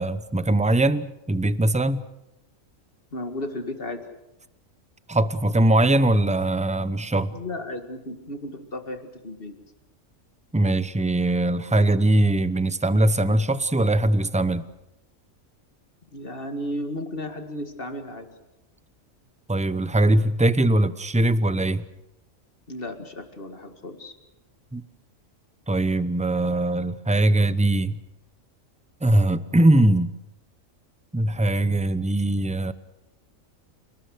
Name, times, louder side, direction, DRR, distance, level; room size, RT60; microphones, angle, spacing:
voice 1, 0.0-2.0 5.1-7.4 10.5-14.7 19.5-21.8 24.7-24.8 25.7-28.0 29.0-30.1 31.1-32.7, right 1 dB, 10° right, 14 dB, 0.5 m, -21 dB
voice 2, 3.1-4.0 7.3-9.5 16.1-18.3 22.7-24.1, left 1 dB, 45° left, 6 dB, 2.3 m, -34 dB
29.0 x 19.0 x 6.5 m, 0.93 s
omnidirectional pair, 1.4 m